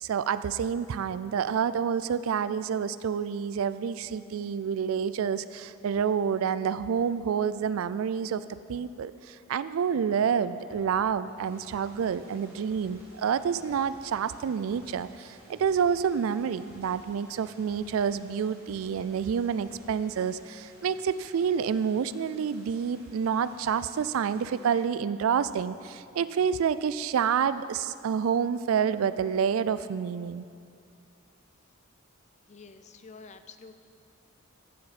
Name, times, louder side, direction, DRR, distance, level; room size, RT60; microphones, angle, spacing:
voice 1, 0.0-8.4 8.7-30.4, right 7 dB, 80° right, 15 dB, 0.3 m, -28 dB
sound 1, 9.9-27.6, right 1 dB, 10° right, 1.3 m, -57 dB
sound 2, 11.4-24.8, right 1 dB, 50° right, 2.7 m, -58 dB
voice 2, 32.5-33.8, left 4 dB, 35° left, 10 dB, 0.4 m, -48 dB
15.0 x 7.5 x 4.1 m, 2.4 s
head